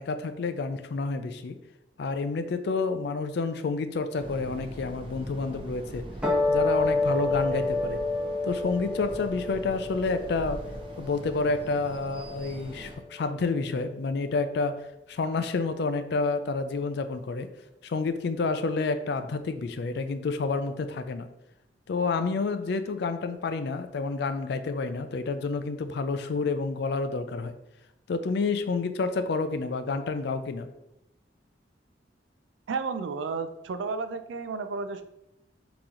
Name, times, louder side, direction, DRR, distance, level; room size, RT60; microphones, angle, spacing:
voice 1, 0.0-1.6 2.0-6.0 6.5-8.0 8.4-10.6 11.0-14.7 15.1-17.5 17.8-21.3 21.9-27.6 28.1-30.7, left 4 dB, 60° left, 10 dB, 0.4 m, -29 dB
sound 1, 4.2-13.0, right 1 dB, 30° right, 0.5 m, -42 dB
sound 2, 6.2-12.7, left 2 dB, 5° right, 1.0 m, -29 dB
voice 2, 32.7-35.0, right 4 dB, 80° right, 9 dB, 0.4 m, -32 dB
3.9 x 2.9 x 3.7 m, 0.87 s
head